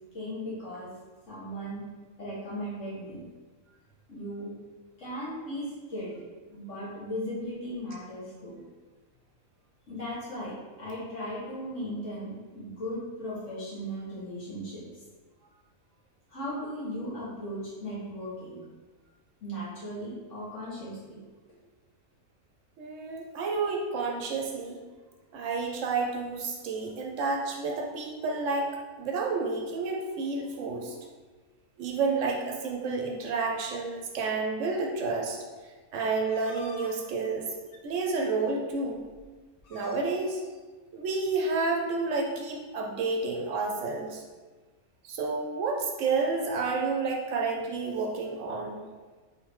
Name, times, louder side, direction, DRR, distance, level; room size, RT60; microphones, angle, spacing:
voice 1, 0.1-0.9 1.3-1.9 2.2-3.2 4.1-4.5 5.0-6.2 6.5-8.6 9.9-14.8 16.3-18.6 19.4-21.2, equal, 65° left, -7 dB, 1.7 m, -37 dB
voice 2, 22.8-24.8 25.3-28.7 29.0-31.0 31.8-35.4 35.9-37.5 37.8-39.0 39.7-40.4 40.9-44.2 45.0-48.8, right 4 dB, 70° right, 1 dB, 0.9 m, -30 dB
sound 1, 36.3-36.9 37.7-37.8 38.7-38.8 39.0-39.3 39.6-40.0, left 3 dB, 80° left, 1.1 m, -48 dB
3.7 x 3.6 x 3.1 m, 1.3 s
omnidirectional pair, 1.4 m